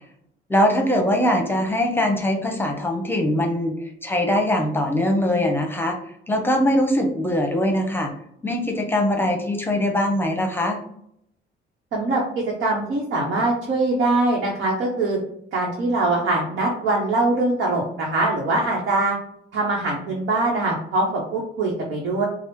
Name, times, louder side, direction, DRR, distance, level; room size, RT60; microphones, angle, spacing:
voice 1, 0.5-6.0 6.3-8.1 8.4-10.8, left 1 dB, 10° left, 3 dB, 0.8 m, -22 dB
voice 2, 11.9-15.2 15.5-19.1 19.5-22.3, right 2 dB, 75° right, -2 dB, 0.9 m, -22 dB
4.7 x 2.0 x 3.1 m, 0.71 s
cardioid pair, 90°, 20 cm